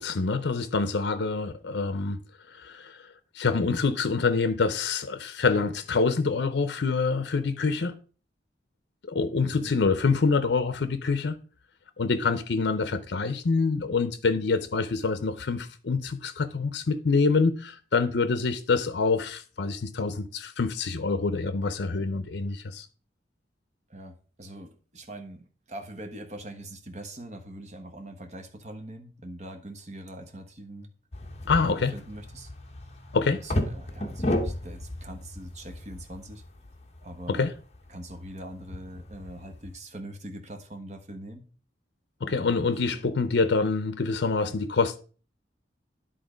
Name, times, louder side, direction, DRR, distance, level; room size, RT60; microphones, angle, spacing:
voice 1, 0.0-2.2 2.5-3.1 3.3-8.0 9.0-11.4 12.0-22.9 31.5-31.9 33.1-33.4 37.3-37.5 42.2-45.0, left 4 dB, 75° left, 0.6 m, -26 dB
voice 2, 23.9-30.9 31.6-32.5 33.2-36.4 37.0-37.4 37.9-41.5 42.2-43.0, right 1 dB, 40° right, 1.2 m, -42 dB
sound 1, 31.1-39.8, left 1 dB, 35° left, 0.9 m, -34 dB
10.5 x 3.8 x 5.0 m
head